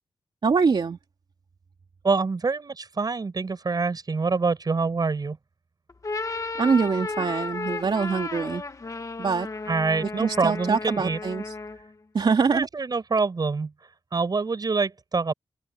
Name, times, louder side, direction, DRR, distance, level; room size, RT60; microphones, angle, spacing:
voice 1, 0.4-1.0 6.6-8.6 9.2-9.5 10.0-11.6 12.1-12.7, right 5 dB, 60° right, 3.0 m, -24 dB
voice 2, 2.0-5.4 9.7-11.2 12.5-13.7 14.1-15.3, right 4 dB, 45° right, 7.7 m, -25 dB
sound 1, 5.9-11.9, left 3 dB, 35° left, 2.0 m, -34 dB
open air
wide cardioid pair, 130°, 9 cm